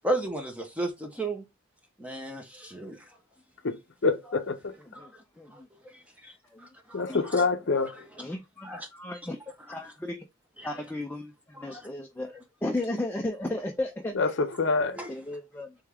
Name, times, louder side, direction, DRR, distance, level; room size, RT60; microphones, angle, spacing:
voice 1, 0.0-1.4 2.0-3.0 4.9-5.1 5.5-6.3 6.6-7.4 7.7-7.9 8.6-8.9 10.6-10.7 11.6-11.8 15.0-15.1, right 1 dB, 5° right, 0.8 m, -34 dB
voice 2, 4.0-4.7 6.9-7.9 14.2-15.0, left 4 dB, 55° left, 0.6 m, -26 dB
voice 3, 4.9-5.7 6.5-7.3 8.2-9.4 9.7-10.3 10.6-14.1 15.1-15.8, left 1 dB, 10° left, 0.4 m, -35 dB
3.5 x 3.4 x 3.4 m
head